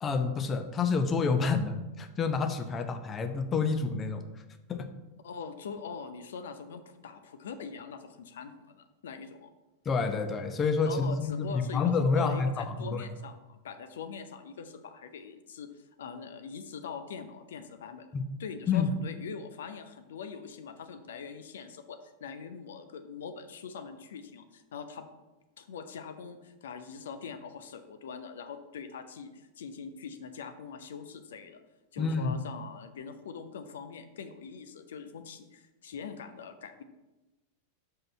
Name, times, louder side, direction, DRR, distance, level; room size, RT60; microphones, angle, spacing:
voice 1, 0.0-4.2 4.7-4.9 9.8-13.1 18.1-18.2 18.7-18.9 32.0-32.3, left 4 dB, 25° left, 8 dB, 0.8 m, -28 dB
voice 2, 5.2-9.5 10.8-15.7 16.0-18.1 18.4-25.1 25.6-31.6 31.9-36.8, left 6 dB, 60° left, 9 dB, 0.7 m, -43 dB
5.8 x 5.3 x 5.4 m, 1.1 s
figure-of-eight pair, 90°, 0 cm